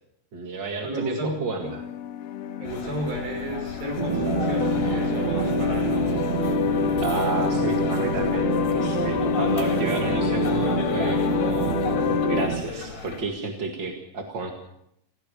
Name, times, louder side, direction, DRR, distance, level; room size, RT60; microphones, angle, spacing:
voice 1, 0.3-1.8 7.0-8.5 8.8-11.8 12.3-14.5, right 3 dB, 40° right, 3 dB, 2.0 m, -31 dB
voice 2, 0.8-1.7 2.6-5.9, right 1 dB, 70° right, 3 dB, 7.6 m, -33 dB
sound 1, 1.6-12.5, left 10 dB, 85° left, 3.1 m, -27 dB
sound 2, 2.6-13.2, left 4 dB, 60° left, 5.0 m, -36 dB
sound 3, 4.0-12.6, right 5 dB, 55° right, 2.9 m, -27 dB
28.5 x 15.5 x 6.9 m, 0.77 s
omnidirectional pair, 4.3 m